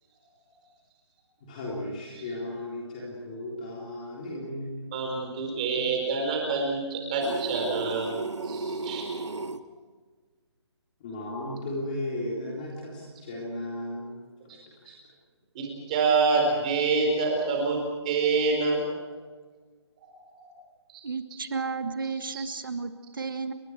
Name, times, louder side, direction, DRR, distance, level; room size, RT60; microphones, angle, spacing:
voice 1, 1.4-4.9 11.0-14.1 14.5-14.6 14.8-14.9, left 1 dB, 15° left, -4 dB, 3.5 m, -35 dB
voice 2, 4.9-9.1 14.9-15.0 15.5-17.8 18.0-18.8 20.4-20.5 20.9-21.0 22.3-22.4, right 4 dB, 15° right, 1 dB, 4.5 m, -27 dB
sound 1, 7.2-9.6, right 3 dB, 80° right, 1.7 m, -33 dB
voice 3, 21.0-23.5, right 4 dB, 50° right, 9 dB, 1.6 m, -33 dB
29.5 x 25.0 x 4.7 m, 1.5 s
hypercardioid pair, 180°, 15 cm